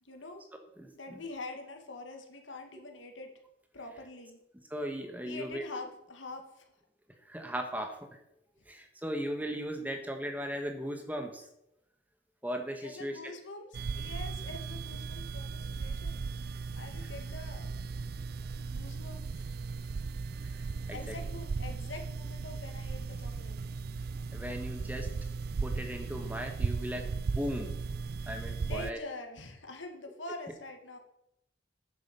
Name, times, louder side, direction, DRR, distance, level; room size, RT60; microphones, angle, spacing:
voice 1, 0.0-0.4 0.9-3.3 3.7-4.4 5.2-6.7 12.8-17.7 18.6-19.5 20.9-23.6 28.6-31.0, left 2 dB, 85° left, 4 dB, 2.2 m, -45 dB
voice 2, 4.7-5.6 7.2-8.1 8.7-11.5 12.4-13.2 20.4-20.6 20.9-21.2 24.3-25.1 25.6-27.1 27.3-27.8 28.3-29.0, equal, 10° right, 4 dB, 1.5 m, -37 dB
sound 1, 13.7-28.9, right 4 dB, 55° right, 0.4 m, -37 dB
10.0 x 7.9 x 6.9 m, 0.81 s
head